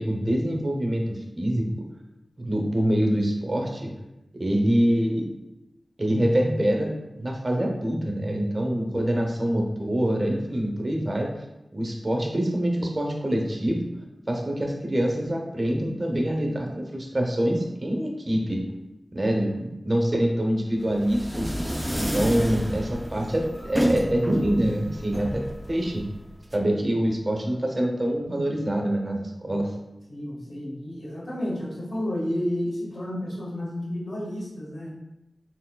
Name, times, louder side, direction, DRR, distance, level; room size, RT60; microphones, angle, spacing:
voice 1, 0.0-1.7 2.4-3.9 4.3-5.3 6.0-11.3 11.7-13.8 14.3-18.6 19.1-21.5 21.9-25.4 25.7-26.0 26.5-29.7, right 1 dB, 35° right, 1 dB, 0.8 m, -25 dB
sound 1, 20.8-26.6, equal, 5° right, 0.3 m, -30 dB
voice 2, 22.1-22.5 26.8-26.9 30.1-34.9, left 1 dB, 75° left, -6 dB, 1.5 m, -31 dB
4.6 x 3.7 x 2.3 m, 0.95 s
wide cardioid pair, 65°, 0 cm